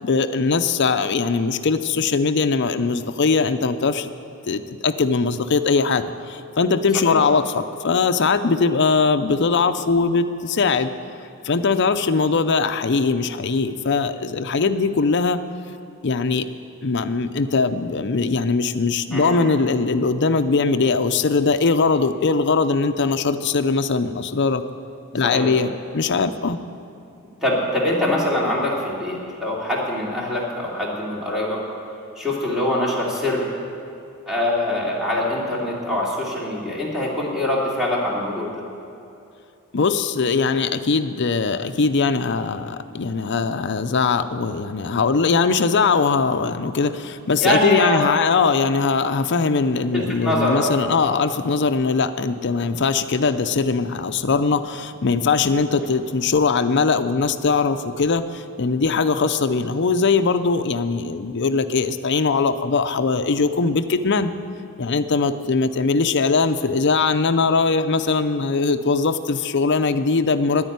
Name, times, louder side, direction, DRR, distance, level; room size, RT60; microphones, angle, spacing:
voice 1, 0.0-4.1 4.5-10.9 11.4-15.4 16.0-16.5 16.8-24.6 25.1-26.6 39.7-64.3 64.8-70.7, left 4 dB, 55° left, 9 dB, 0.6 m, -21 dB
voice 2, 27.4-31.6 32.2-33.5 34.3-38.6 47.4-48.0 49.9-50.7, left 1 dB, ahead, -5 dB, 2.7 m, -23 dB
10.0 x 9.7 x 9.3 m, 2.7 s
head